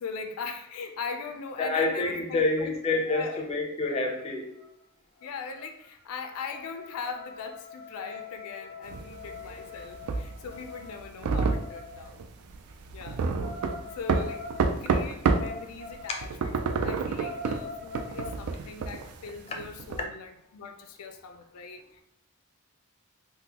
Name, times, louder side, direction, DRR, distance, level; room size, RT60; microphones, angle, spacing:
voice 1, 0.0-2.8 3.1-3.5 5.2-12.2 12.9-13.2 13.9-22.0, left 5 dB, 90° left, 6 dB, 0.4 m, -40 dB
voice 2, 1.6-4.5 9.1-9.2 9.6-9.7, left 2 dB, 30° left, 1 dB, 0.4 m, -28 dB
sound 1, 4.1-4.2 4.5-4.8 5.2-12.1 13.4-16.2 16.6-16.7 17.0-18.4, left 3 dB, 65° right, 1.1 m, -43 dB
sound 2, 8.9-15.6 15.9-20.0, right 4 dB, 85° right, 0.3 m, -29 dB
3.7 x 2.1 x 2.8 m, 0.74 s
head